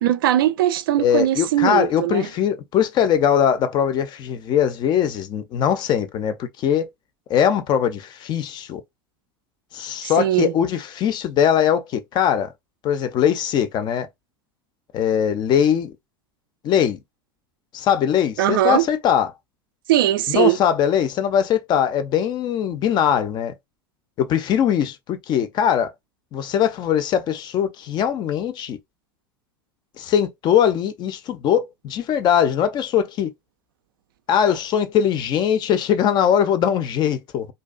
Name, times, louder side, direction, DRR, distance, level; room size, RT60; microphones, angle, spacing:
voice 1, 0.0-2.3 10.2-10.5 18.4-18.8 19.9-20.6, right 12 dB, 65° right, 0.4 m, -20 dB
voice 2, 1.0-6.9 7.3-8.8 9.7-12.5 12.8-14.1 14.9-15.9 16.6-17.0 17.7-19.3 20.3-23.5 24.2-25.9 26.3-28.8 30.0-33.3 34.3-37.5, left 9 dB, 35° left, 0.4 m, -21 dB
2.5 x 2.2 x 2.4 m
figure-of-eight pair, 80°, 12 cm